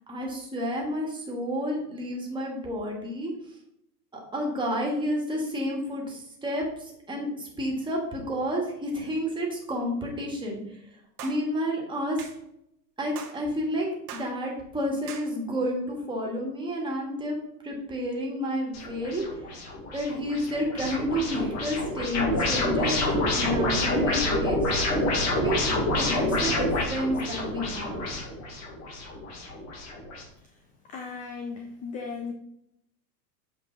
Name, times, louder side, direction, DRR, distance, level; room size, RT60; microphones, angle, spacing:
voice 1, 0.1-3.3 4.1-10.6 11.2-12.2 13.0-17.4 17.6-19.2 19.9-24.6 25.3-25.6 26.0-28.0, equal, 10° right, -1 dB, 1.9 m, -30 dB
sound 1, 11.2-11.4 12.2-12.4 13.2-13.4 14.1-14.3 15.1-15.3, right 7 dB, 65° right, 1.5 m, -40 dB
sound 2, 18.7-30.2, left 1 dB, 30° left, 1.9 m, -28 dB
voice 2, 30.8-32.3, left 5 dB, 15° left, 3 dB, 0.5 m, -36 dB
7.6 x 4.9 x 4.0 m, 0.78 s
hypercardioid pair, 125°, 50 cm